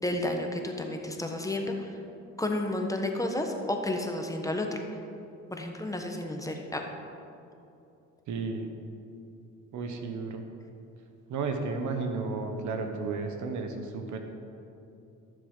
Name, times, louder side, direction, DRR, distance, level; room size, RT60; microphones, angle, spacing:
voice 1, 0.0-1.9 2.4-4.8 5.5-6.8, left 1 dB, 10° left, 3 dB, 1.3 m, -31 dB
voice 2, 8.3-8.7 9.7-10.4 11.3-14.2, right 4 dB, 80° right, 5 dB, 1.3 m, -33 dB
14.0 x 7.1 x 5.6 m, 2.7 s
cardioid pair, 90°, 30 cm